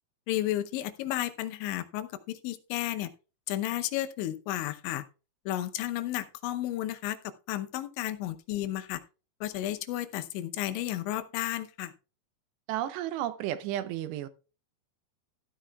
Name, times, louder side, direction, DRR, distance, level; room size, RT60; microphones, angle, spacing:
voice 1, 0.3-3.1 3.5-5.0 5.5-9.0 9.4-11.9, left 14 dB, 90° left, 3.2 m, -33 dB
voice 2, 12.7-14.3, right 12 dB, 80° right, 2.7 m, -32 dB
13.5 x 12.5 x 2.3 m
omnidirectional pair, 5.2 m